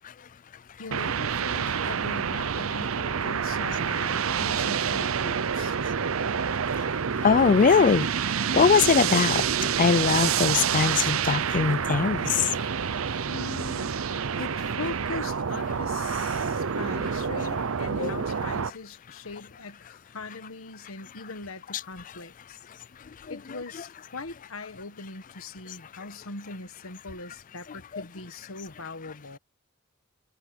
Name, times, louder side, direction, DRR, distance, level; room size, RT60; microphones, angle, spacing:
voice 1, 0.8-5.8 13.3-14.0 14.4-22.6 23.3-29.4, left 3 dB, 70° left, 1.4 m, -40 dB
sound 1, 0.9-18.7, right 7 dB, 70° right, 0.6 m, -28 dB
voice 2, 7.2-8.1 8.5-9.4 9.8-12.4 18.0-18.1, left 5 dB, 40° left, 0.4 m, -21 dB
head